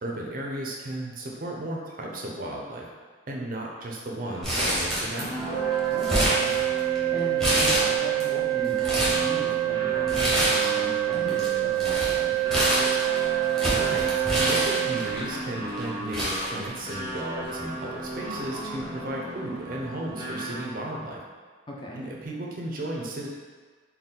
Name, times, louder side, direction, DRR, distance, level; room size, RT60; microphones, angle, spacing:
voice 1, 0.0-2.9 3.3-5.6 13.7-21.2 21.9-23.3, right 1 dB, 45° right, -2 dB, 0.5 m, -34 dB
sound 1, 4.2-20.9, right 1 dB, 40° left, 1.2 m, -36 dB
Crumpling crinkling, 4.4-5.4 5.7-7.0 7.4-8.2 8.6-9.3 10.1-10.9 11.1-15.2 15.8-15.9 16.1-17.2 17.5-17.6 18.5-18.8, equal, ahead, 0.9 m, -26 dB
sound 2, 5.5-15.2, right 17 dB, 75° left, 0.9 m, -26 dB
voice 2, 5.9-12.4 21.7-22.0, left 1 dB, 25° left, -4 dB, 0.5 m, -38 dB
4.0 x 2.3 x 3.7 m, 1.5 s
head